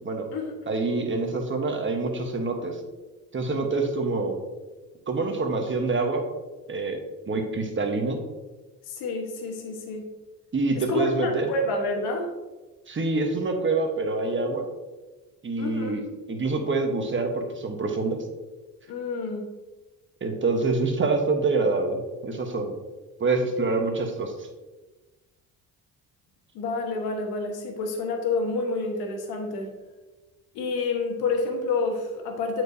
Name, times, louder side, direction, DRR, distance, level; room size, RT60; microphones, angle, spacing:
voice 1, 0.7-2.8 3.3-4.4 5.1-6.2 6.7-7.0 7.3-8.2 10.5-11.5 12.9-14.7 15.4-16.0 16.3-18.2 20.2-22.7 23.2-24.5, right 3 dB, 35° right, 4 dB, 1.1 m, -26 dB
voice 2, 8.8-10.1 10.7-12.3 15.6-15.9 18.9-19.5 26.5-29.7 30.5-32.6, left 3 dB, 90° left, 3 dB, 1.2 m, -28 dB
8.2 x 4.6 x 2.7 m, 1.2 s
cardioid pair, 80°, 36 cm